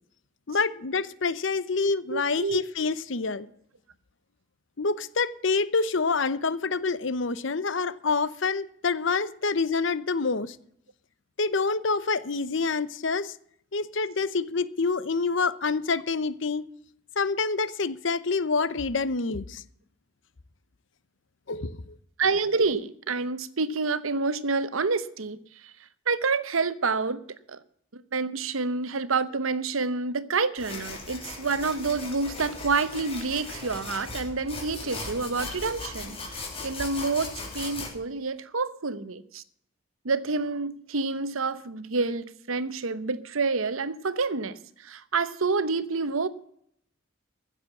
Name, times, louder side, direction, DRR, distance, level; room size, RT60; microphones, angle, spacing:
voice 1, 0.5-3.5 4.8-10.6 11.4-13.4 13.7-16.6 17.2-19.6 21.5-21.9, left 4 dB, 65° left, 0.8 m, -27 dB
voice 2, 2.1-2.6 22.2-25.7 26.1-27.2 27.5-27.6 27.9-39.4 40.0-46.3, right 4 dB, 90° right, 1.0 m, -28 dB
sound 1, 30.6-37.9, left 3 dB, 30° left, 3.3 m, -38 dB
15.0 x 7.3 x 7.2 m
head